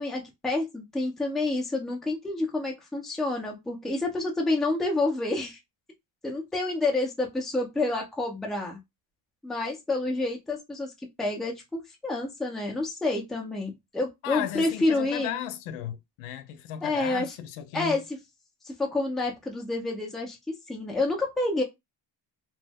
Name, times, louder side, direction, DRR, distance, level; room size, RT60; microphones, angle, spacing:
voice 1, 0.0-5.6 6.2-8.8 9.4-10.9 11.2-15.4 16.8-17.3 17.7-18.2 18.6-21.6, left 2 dB, ahead, 0.5 m, -29 dB
voice 2, 14.2-18.0, left 11 dB, 80° left, 0.7 m, -35 dB
3.0 x 2.1 x 3.4 m
cardioid pair, 160°, 49 cm